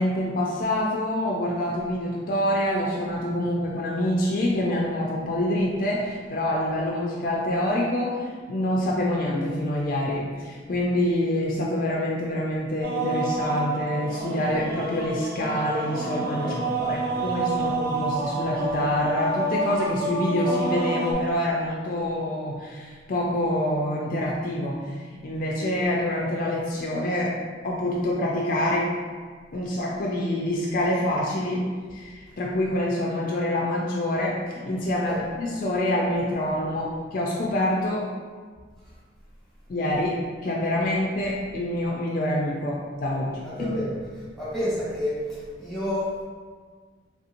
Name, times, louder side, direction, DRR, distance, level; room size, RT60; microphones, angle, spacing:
voice 1, 0.0-16.6 16.9-27.4 27.6-28.9 29.5-38.1 39.7-43.8, left 1 dB, 50° left, -3 dB, 0.4 m, -26 dB
sound 1, 12.8-21.1, right 2 dB, 55° right, 0.7 m, -28 dB
voice 2, 16.4-17.3 35.0-35.2 38.8-38.9 43.4-43.9 44.4-46.2, equal, ahead, -9 dB, 1.1 m, -30 dB
3.4 x 2.8 x 2.5 m, 1.5 s
head